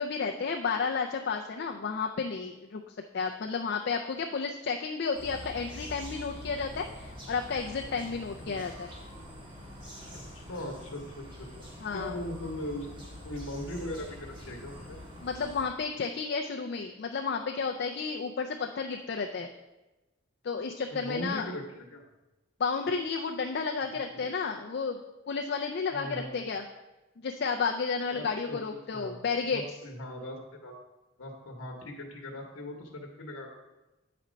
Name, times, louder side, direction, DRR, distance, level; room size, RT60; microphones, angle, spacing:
voice 1, 0.0-8.9 11.8-12.1 15.2-19.5 20.4-21.5 22.6-26.6 27.2-29.6, left 5 dB, 50° left, 2 dB, 0.4 m, -32 dB
sound 1, 5.1-15.6, left 1 dB, 25° right, 1.6 m, -45 dB
voice 2, 10.3-11.2 11.9-15.0 20.9-22.0 24.1-24.3 25.9-26.4 28.1-28.6 28.9-29.2 29.5-30.7 31.2-33.5, left 1 dB, 90° left, 0 dB, 1.0 m, -39 dB
8.5 x 4.2 x 5.1 m, 1.0 s
head